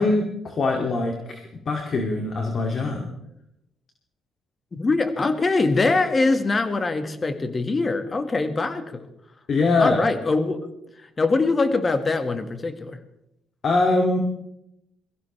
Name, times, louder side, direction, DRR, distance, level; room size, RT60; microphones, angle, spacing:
voice 1, 0.0-3.1 9.5-10.0 13.6-14.2, left 3 dB, 50° left, 1 dB, 2.5 m, -23 dB
voice 2, 4.7-9.1 9.8-10.7 11.2-13.0, left 3 dB, 30° left, 8 dB, 1.7 m, -23 dB
23.5 x 15.5 x 3.3 m, 0.81 s
cardioid pair, 90°, 0 cm